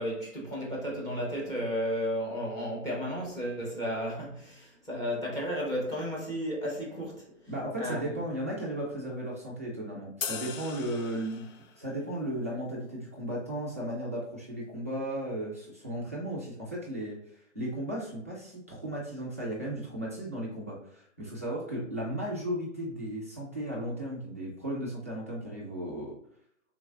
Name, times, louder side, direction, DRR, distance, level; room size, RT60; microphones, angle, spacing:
voice 1, 0.0-7.3 7.8-8.1, equal, 10° left, 0.8 m, -33 dB
voice 2, 7.5-11.5 11.8-26.2, right 1 dB, 15° right, 0.3 m, -35 dB
sound 1, 10.2-11.8, left 6 dB, 90° left, 0.7 m, -38 dB
4.9 x 3.7 x 2.4 m
hypercardioid pair, 150°, 37 cm